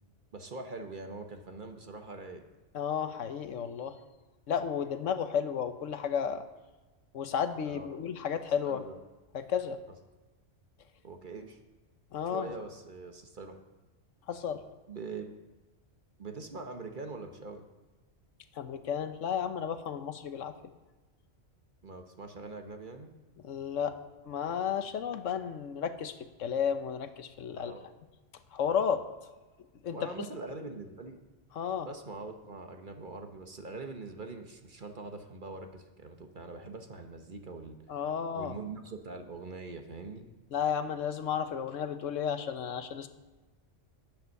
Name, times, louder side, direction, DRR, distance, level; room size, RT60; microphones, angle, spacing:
voice 1, 0.3-2.4 7.6-8.0 8.6-9.0 11.0-11.6 12.3-13.6 14.9-15.4 16.2-17.6 21.8-23.1 27.5-27.9 29.9-31.2 31.8-37.8 38.3-40.3, right 3 dB, 45° right, 5 dB, 1.2 m, -43 dB
voice 2, 2.7-4.0 4.5-6.4 7.1-8.8 9.3-9.8 12.1-12.5 14.3-14.6 18.6-20.5 23.4-24.0 24.3-26.1 26.4-27.7 28.5-29.0 29.8-30.1 31.5-31.9 37.9-38.6 40.5-43.1, left 7 dB, 85° left, 10 dB, 1.2 m, -32 dB
11.0 x 8.7 x 6.5 m, 1.2 s
omnidirectional pair, 1.3 m